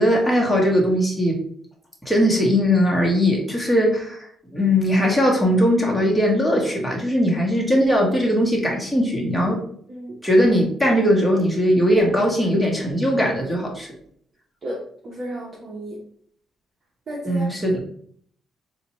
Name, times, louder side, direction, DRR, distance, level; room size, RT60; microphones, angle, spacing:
voice 1, 0.0-1.4 2.0-9.6 10.2-13.9 17.2-17.8, equal, 5° left, -2 dB, 1.0 m, -19 dB
voice 2, 15.0-16.0 17.1-17.5, right 1 dB, 45° right, -3 dB, 0.8 m, -32 dB
4.0 x 2.2 x 3.0 m, 0.62 s
cardioid pair, 90°, 0 cm